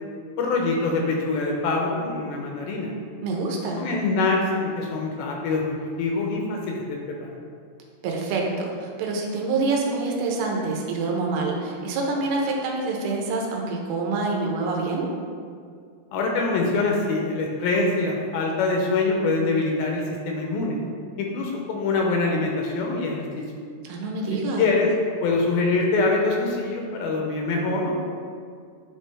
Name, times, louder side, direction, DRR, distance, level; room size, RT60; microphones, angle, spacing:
voice 1, 0.4-2.9 3.8-7.3 16.1-20.8 21.2-23.4 24.6-24.9 25.2-27.9, left 3 dB, 80° left, 0 dB, 2.3 m, -24 dB
voice 2, 3.2-3.8 8.0-15.1 23.8-24.7, right 3 dB, 90° right, 0 dB, 2.7 m, -26 dB
9.8 x 3.3 x 3.2 m, 2.2 s
omnidirectional pair, 4.5 m